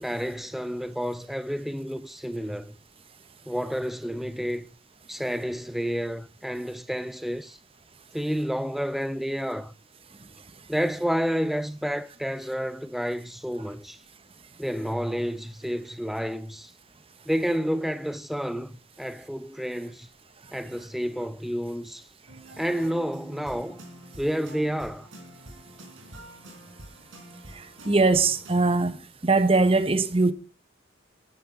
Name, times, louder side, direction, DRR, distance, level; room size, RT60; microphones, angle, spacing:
voice 1, 0.0-2.7 3.5-4.7 5.1-7.6 8.1-9.7 10.7-14.0 14.6-16.7 17.3-20.1 20.5-22.0 22.6-23.8 24.2-25.1, equal, ahead, 0.6 m, -30 dB
sound 1, 22.3-28.6, right 1 dB, 90° right, 4.0 m, -47 dB
voice 2, 27.5-29.0 29.2-30.3, right 3 dB, 30° right, 0.9 m, -21 dB
11.0 x 11.0 x 6.0 m
head